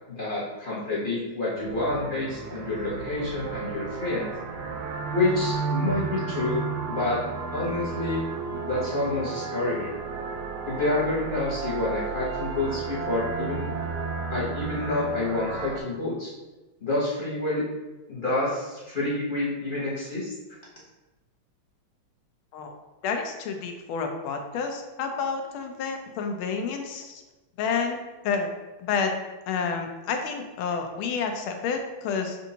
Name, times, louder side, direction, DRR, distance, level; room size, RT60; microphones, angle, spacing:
voice 1, 0.1-4.3 5.1-7.2 7.5-8.2 8.6-9.9 10.6-13.7 14.3-16.3 16.8-17.6 18.1-20.3, left 2 dB, 40° left, -7 dB, 0.7 m, -28 dB
sound 1, 1.6-15.8, right 5 dB, 90° right, 1.5 m, -33 dB
voice 2, 23.0-27.2 27.6-28.0 28.2-28.5 28.8-29.1 29.5-32.4, left 5 dB, 80° left, 4 dB, 1.4 m, -29 dB
6.9 x 2.6 x 2.7 m, 1.1 s
omnidirectional pair, 2.3 m